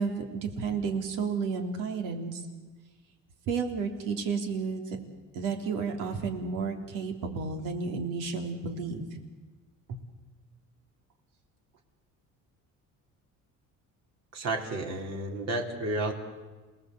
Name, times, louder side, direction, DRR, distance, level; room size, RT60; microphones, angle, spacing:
voice 1, 0.0-2.4 3.5-4.8 5.3-9.1 9.9-10.1, right 5 dB, 80° right, 4 dB, 3.6 m, -32 dB
voice 2, 14.3-16.1, right 2 dB, 55° right, 2 dB, 3.8 m, -31 dB
28.0 x 19.0 x 8.1 m, 1.3 s
cardioid pair, 135°, 32 cm